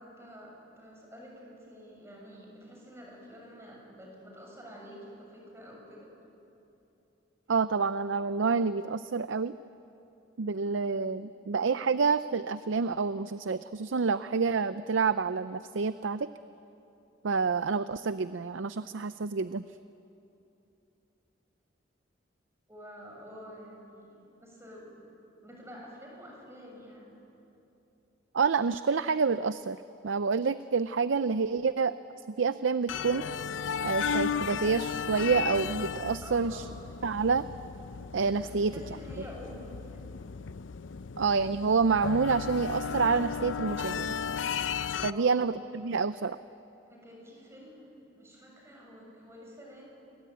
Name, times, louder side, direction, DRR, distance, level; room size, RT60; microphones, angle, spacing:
voice 1, 0.0-6.1 22.7-24.9 25.4-27.1 36.2-36.7 38.4-40.1 45.0-45.4 46.9-47.9 48.2-49.8, equal, 15° right, -2 dB, 7.1 m, -48 dB
voice 2, 7.5-9.5 10.4-16.3 17.2-19.6 28.3-29.8 30.0-32.0 32.4-33.3 33.8-36.6 37.0-37.5 38.1-38.7 41.2-44.2 45.0-46.4, right 5 dB, 85° right, 13 dB, 0.5 m, -28 dB
sound 1, 32.9-45.1, left 6 dB, 85° left, 0.6 m, -35 dB
28.0 x 22.5 x 9.2 m, 2.9 s
head